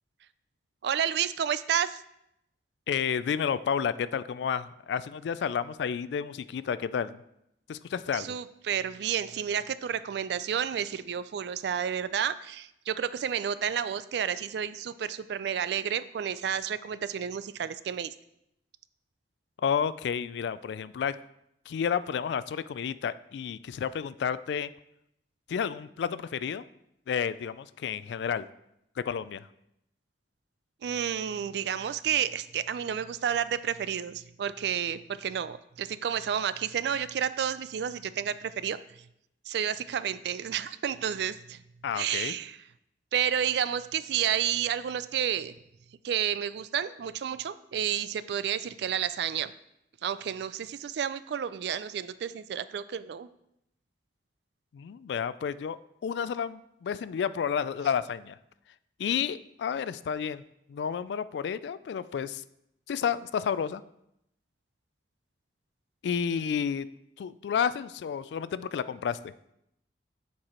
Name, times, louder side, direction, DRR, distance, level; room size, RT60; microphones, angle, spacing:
voice 1, 0.8-2.0 8.1-18.1 30.8-38.8 39.5-41.6 41.9-42.6 43.1-45.5 46.0-49.5 50.0-53.3, right 8 dB, 65° right, 14 dB, 0.3 m, -31 dB
voice 2, 2.9-7.2 7.7-8.3 19.6-21.1 21.7-24.7 25.5-26.6 27.1-28.4 29.1-29.5 41.8-42.3 54.7-58.4 59.0-60.4 60.7-62.4 62.9-63.8 66.0-66.9 67.2-69.2, left 7 dB, 75° left, 16 dB, 0.3 m, -31 dB
7.3 x 4.7 x 4.3 m, 0.80 s
head